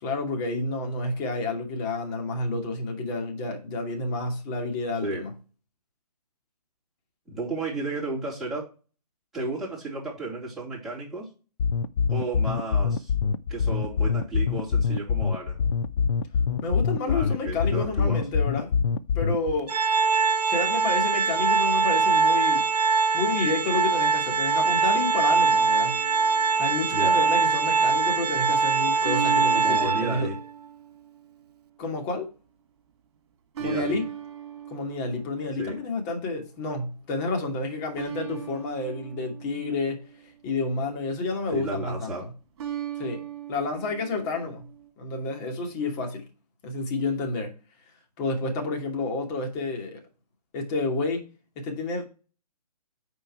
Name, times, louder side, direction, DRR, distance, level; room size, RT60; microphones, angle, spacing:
voice 1, 0.0-5.3 16.6-18.7 19.1-19.7 20.4-22.7 23.1-25.9 26.6-30.3 31.8-32.3 33.6-34.0 34.7-40.0 40.4-42.1 43.0-44.7 45.0-46.2 46.6-47.5 48.2-50.0 50.5-51.3 51.6-52.0, left 3 dB, 25° left, 2.5 m, -30 dB
voice 2, 7.3-8.7 9.3-11.3 12.1-13.1 13.5-15.6 17.0-18.2 26.9-27.2 29.5-30.3 33.6-34.0 35.6-35.8 41.5-42.2, right 2 dB, ahead, 3.8 m, -33 dB
sound 1, 11.6-19.6, left 6 dB, 45° left, 0.6 m, -24 dB
Organ, 19.7-30.4, right 4 dB, 75° right, 0.5 m, -22 dB
sound 2, 25.4-26.7 29.0-31.5 33.6-36.1 38.0-40.5 42.6-44.9, right 10 dB, 45° right, 2.2 m, -38 dB
9.0 x 4.7 x 4.6 m
figure-of-eight pair, 135°, 20 cm